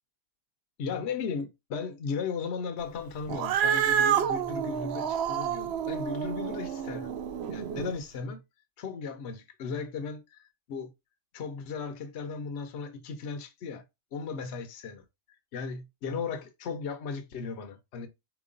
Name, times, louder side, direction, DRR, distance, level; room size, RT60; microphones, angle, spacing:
voice 1, 0.8-7.1 7.5-8.4 8.8-10.9 11.3-13.8 14.1-15.0 15.5-18.1, left 5 dB, 60° left, 1.0 m, -36 dB
Cat, 3.3-7.9, right 9 dB, 65° right, 0.7 m, -29 dB
4.5 x 3.0 x 3.7 m
omnidirectional pair, 1.4 m